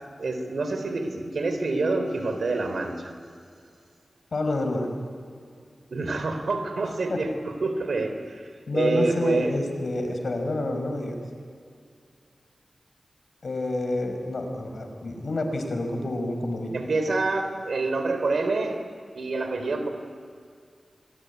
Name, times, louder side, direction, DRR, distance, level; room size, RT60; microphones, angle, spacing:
voice 1, 0.2-3.1 5.9-9.6 10.0-10.2 16.7-18.8 19.1-19.9, right 3 dB, 80° right, 7 dB, 3.9 m, -27 dB
voice 2, 4.3-4.9 7.1-7.2 8.7-11.2 13.4-16.8, left 1 dB, 70° left, 5 dB, 5.4 m, -28 dB
26.5 x 22.0 x 9.6 m, 2.3 s
cardioid pair, 45°, 0 cm